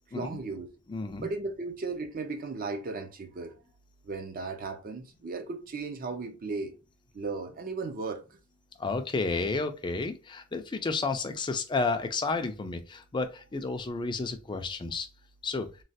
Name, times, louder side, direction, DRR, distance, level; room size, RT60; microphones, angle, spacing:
voice 1, 0.1-0.7 1.2-3.5 4.0-6.7 7.1-8.4, right 3 dB, 40° right, 0.5 m, -36 dB
voice 2, 0.9-1.3 8.8-15.1 15.4-15.7, left 3 dB, 20° left, 0.4 m, -31 dB
3.1 x 2.3 x 2.7 m
head